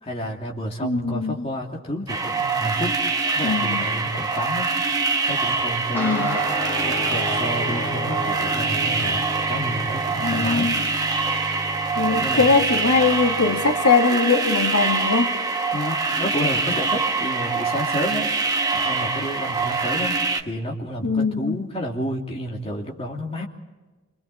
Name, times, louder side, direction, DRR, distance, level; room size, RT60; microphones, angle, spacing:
voice 1, 0.0-3.0 3.3-4.7 5.3-6.5 6.8-10.7 12.2-12.5 15.7-18.3 18.7-20.2 20.4-23.5, equal, 25° left, -1 dB, 2.7 m, -30 dB
voice 2, 0.8-1.5 3.4-3.9 5.9-6.3 10.2-10.8 11.9-15.4 21.0-21.6, left 4 dB, 85° left, 4 dB, 1.7 m, -21 dB
sound 1, 2.1-20.4, right 4 dB, 15° right, 1.1 m, -24 dB
sound 2, 5.9-13.7, equal, 10° left, 4.9 m, -32 dB
29.5 x 24.5 x 4.2 m, 1.3 s
head